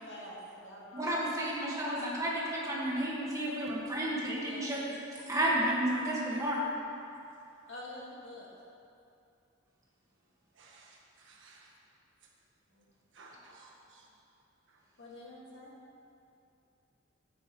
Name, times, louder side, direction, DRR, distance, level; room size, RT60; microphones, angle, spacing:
voice 1, 0.0-1.2 4.4-4.6 7.7-8.5 12.7-12.8 15.0-15.7, left 1 dB, 65° left, -5 dB, 2.1 m, -46 dB
voice 2, 0.9-4.8 5.1-6.6, right 1 dB, 15° right, -5 dB, 1.8 m, -32 dB
voice 3, 10.6-11.7 13.1-14.0, right 3 dB, 65° right, -2 dB, 1.4 m, -57 dB
12.0 x 9.2 x 3.2 m, 2.6 s
head